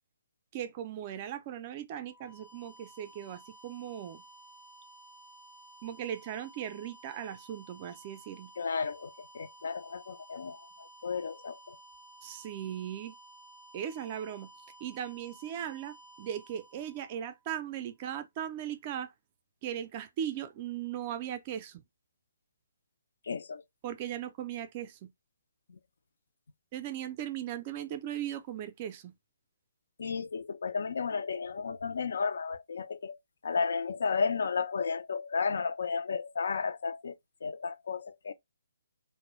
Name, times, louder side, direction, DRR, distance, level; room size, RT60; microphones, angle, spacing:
voice 1, 0.5-4.2 5.8-8.5 12.2-13.2 13.7-14.5 14.8-19.1 19.6-21.8 23.8-25.1 26.7-29.1, right 10 dB, 35° right, 0.3 m, -38 dB
sound 1, 2.0-17.8, right 1 dB, 85° left, 0.8 m, -55 dB
voice 2, 8.6-11.8 23.3-23.6 25.7-25.8 30.0-33.2 33.4-38.3, left 5 dB, 70° left, 0.3 m, -33 dB
2.3 x 2.0 x 3.0 m
hypercardioid pair, 145°, 0 cm